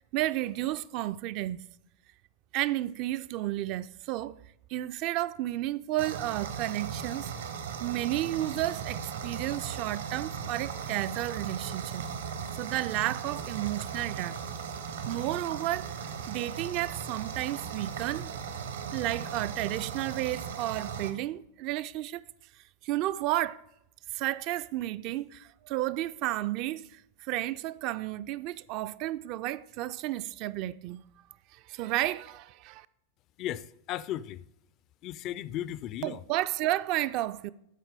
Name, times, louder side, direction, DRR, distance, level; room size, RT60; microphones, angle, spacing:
voice 1, 0.0-1.6 2.5-4.4 4.7-7.3 7.8-12.1 12.5-14.4 15.1-18.3 18.9-22.2 22.8-23.6 24.1-31.0 31.5-32.9 36.0-37.5, right 15 dB, 40° right, 0.3 m, -32 dB
sound 1, 6.0-21.1, right 6 dB, 65° right, 0.9 m, -37 dB
voice 2, 33.4-34.4 35.0-36.2, left 12 dB, 35° left, 0.3 m, -36 dB
13.0 x 4.4 x 4.9 m
figure-of-eight pair, 90°, 0 cm